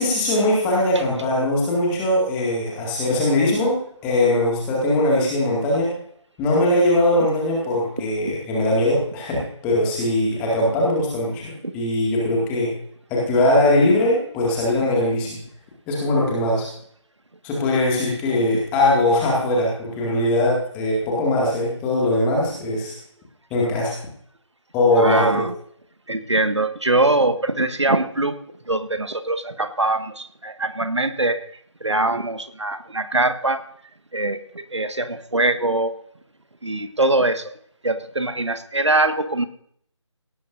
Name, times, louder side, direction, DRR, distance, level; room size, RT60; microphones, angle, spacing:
voice 1, 0.0-5.9 6.4-12.7 13.1-15.4 15.9-16.7 17.4-23.0 23.5-24.0 24.7-25.4, left 1 dB, 10° left, -3 dB, 2.0 m, -20 dB
voice 2, 24.9-25.5 26.1-28.4 28.6-33.6 34.1-35.9 36.6-37.5 37.8-39.5, right 2 dB, 65° right, 9 dB, 1.6 m, -22 dB
17.5 x 13.5 x 2.6 m, 0.63 s
figure-of-eight pair, 155°, 16 cm